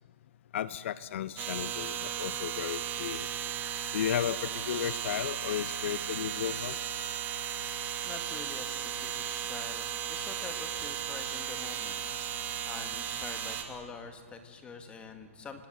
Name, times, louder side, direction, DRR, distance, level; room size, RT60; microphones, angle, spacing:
voice 1, 0.5-3.3 3.9-6.8, left 10 dB, 55° left, 17 dB, 0.6 m, -34 dB
sound 1, 1.4-13.6, right 9 dB, 20° right, 2.4 m, -36 dB
voice 2, 8.0-12.0 12.4-15.7, left 5 dB, 15° left, 7 dB, 1.8 m, -46 dB
28.5 x 18.0 x 7.5 m, 2.1 s
hypercardioid pair, 140°, 8 cm